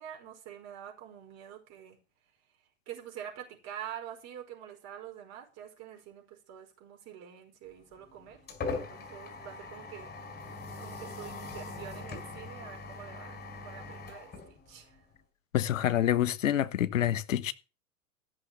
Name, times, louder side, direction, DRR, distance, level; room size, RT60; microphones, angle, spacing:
voice 1, 0.0-2.0 2.9-8.4 8.7-10.1 10.8-15.0, right 10 dB, 40° right, 5.0 m, -46 dB
sound 1, 7.8-15.2, left 3 dB, 20° left, 4.7 m, -41 dB
voice 2, 15.5-17.5, left 11 dB, 65° left, 1.3 m, -27 dB
15.0 x 6.9 x 7.5 m
figure-of-eight pair, 95°, 42 cm